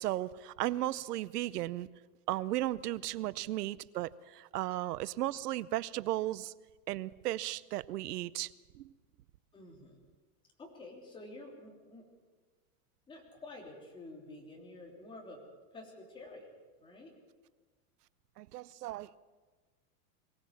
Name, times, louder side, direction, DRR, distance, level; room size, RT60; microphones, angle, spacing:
voice 1, 0.0-1.9 2.3-6.5 6.9-8.8 18.4-19.2, right 15 dB, 90° right, 0.8 m, -35 dB
voice 2, 9.5-10.0 10.6-12.1 13.1-15.4 15.7-16.5 16.8-17.1, left 2 dB, 10° left, 3.1 m, -49 dB
22.5 x 17.5 x 7.3 m
supercardioid pair, 175°, 46 cm